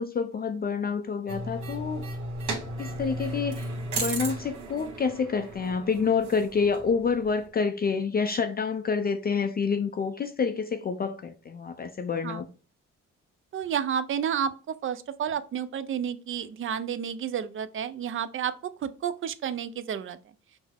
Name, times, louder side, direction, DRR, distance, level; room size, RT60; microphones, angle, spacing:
voice 1, 0.0-2.0 2.8-3.7 4.0-12.5, left 5 dB, 30° left, 0.4 m, -28 dB
sound 1, 1.3-7.5, right 2 dB, 75° right, 1.6 m, -35 dB
voice 2, 13.5-20.2, right 8 dB, 45° right, 0.5 m, -31 dB
5.9 x 2.0 x 3.4 m
cardioid pair, 90°, 30 cm